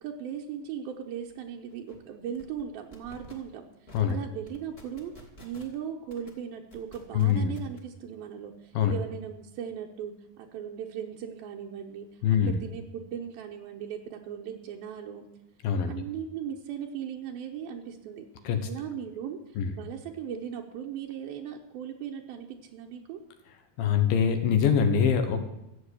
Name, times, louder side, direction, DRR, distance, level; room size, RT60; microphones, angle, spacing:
voice 1, 0.0-3.6 4.1-12.1 12.4-15.3 15.9-18.3 18.6-19.4 19.7-23.2, right 8 dB, 85° right, 1 dB, 2.8 m, -38 dB
sound 1, 1.3-1.4 1.7-2.0 2.3-2.6 2.9-3.3 3.9-4.1 4.4-5.7 6.1-6.3 6.7-7.8, equal, 20° left, 1.9 m, -50 dB
voice 2, 7.1-7.6 8.7-8.9 12.2-12.5 15.6-16.0 18.4-18.7 19.6-19.7 23.8-25.4, left 7 dB, 75° left, 7 dB, 3.0 m, -24 dB
14.0 x 8.1 x 8.3 m, 0.88 s
omnidirectional pair, 4.3 m